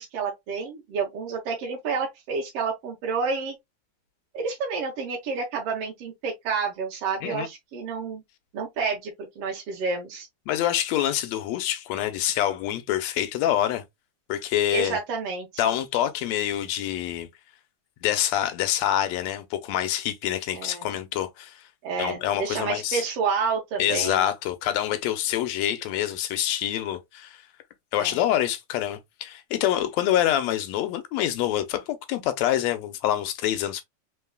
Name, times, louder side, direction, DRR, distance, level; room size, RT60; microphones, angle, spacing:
voice 1, 0.0-3.6 4.3-8.2 8.5-10.3 14.7-15.6 20.5-20.9 21.8-24.3 28.0-28.2, right 5 dB, 65° right, 1.8 m, -29 dB
voice 2, 10.5-13.8 14.3-15.0 15.6-17.3 18.0-21.6 22.0-23.0 23.8-27.4 27.9-33.8, left 12 dB, 75° left, 1.8 m, -26 dB
4.6 x 3.7 x 2.2 m
omnidirectional pair, 3.4 m